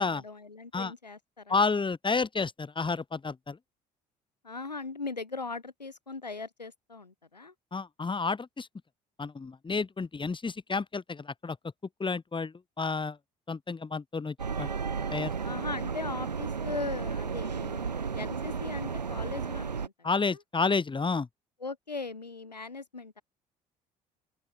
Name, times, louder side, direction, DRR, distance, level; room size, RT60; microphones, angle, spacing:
voice 1, 0.0-1.6 4.4-7.5 15.4-19.9 20.3-20.4 21.6-23.2, left 4 dB, 85° left, 3.0 m, -39 dB
voice 2, 1.5-3.6 7.7-8.7 9.2-11.6 12.0-13.2 13.5-14.7 15.1-15.3 20.0-21.3, left 4 dB, 25° left, 4.4 m, -30 dB
sound 1, 14.4-19.9, right 5 dB, 85° right, 2.8 m, -33 dB
open air
figure-of-eight pair, 55°, 21 cm